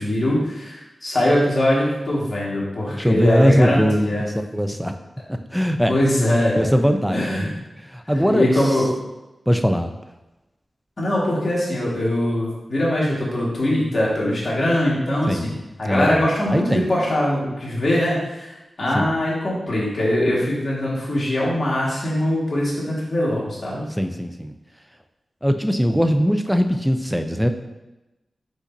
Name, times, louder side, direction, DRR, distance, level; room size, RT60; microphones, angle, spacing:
voice 1, 0.0-4.3 5.9-6.7 7.1-7.5 8.3-8.9 11.0-15.5 15.8-23.8, left 1 dB, 50° left, -6 dB, 1.6 m, -22 dB
voice 2, 2.9-4.9 5.3-6.0 6.6-7.5 7.8-8.8 9.5-9.9 15.3-15.6 15.8-16.9 18.9-19.1 23.9-24.5 25.4-27.5, equal, ahead, 7 dB, 0.4 m, -21 dB
5.1 x 3.9 x 2.6 m, 1.0 s
wide cardioid pair, 80°, 0 cm